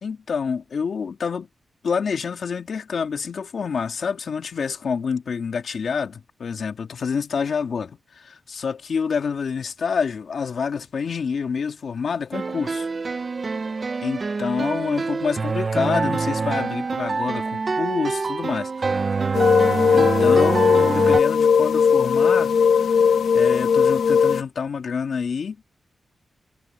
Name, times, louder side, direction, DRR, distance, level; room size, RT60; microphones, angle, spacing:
voice 1, 0.0-1.5 1.8-12.9 14.0-19.1 19.9-22.9 23.3-25.6, left 6 dB, 70° left, 2.5 m, -27 dB
sound 1, 12.3-21.2, right 4 dB, 40° right, 1.6 m, -25 dB
sound 2, 19.3-24.4, left 6 dB, 90° left, 1.8 m, -18 dB
wide cardioid pair, 130°, 0 cm